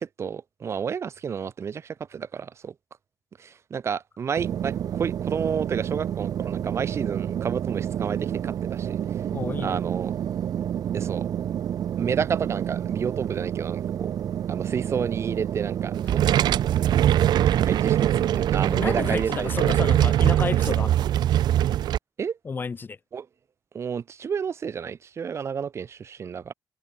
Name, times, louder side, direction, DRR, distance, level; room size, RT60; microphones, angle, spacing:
voice 1, 0.0-2.7 3.4-9.0 9.6-10.1 10.9-11.3 12.0-14.1 14.5-16.2 17.7-19.5 22.2-22.4 23.1-23.3 23.7-26.5, right 7 dB, 40° right, 1.8 m, -30 dB
sound 1, 4.4-19.2, right 9 dB, 55° right, 4.0 m, -29 dB
voice 2, 9.3-9.8 16.3-16.4 18.7-21.0 22.4-23.0, left 5 dB, 25° left, 1.9 m, -31 dB
sound 2, 15.9-22.0, right 12 dB, 75° right, 2.7 m, -22 dB
cardioid pair, 155°, 7 cm